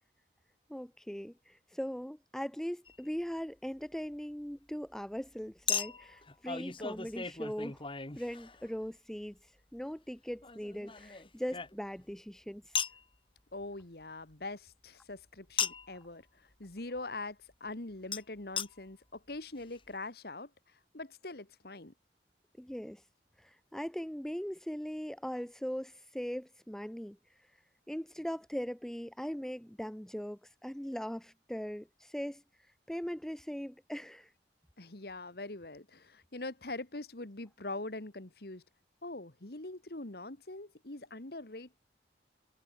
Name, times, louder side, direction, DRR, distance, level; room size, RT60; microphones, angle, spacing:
voice 1, 0.7-7.9 8.2-12.8 22.6-23.0 23.4-27.2 27.9-32.4 32.9-34.3, equal, 5° left, 0.5 m, -40 dB
Chink clink, 2.9-3.0 5.7-8.9 10.4-12.1 12.7-13.0 15.6-16.0 18.1-18.2 18.6-18.7 19.3-19.4 19.6-19.7, left 7 dB, 30° left, 2.0 m, -37 dB
voice 2, 13.5-20.5 20.9-21.9 34.8-38.6 39.0-41.8, left 2 dB, 60° left, 1.9 m, -43 dB
head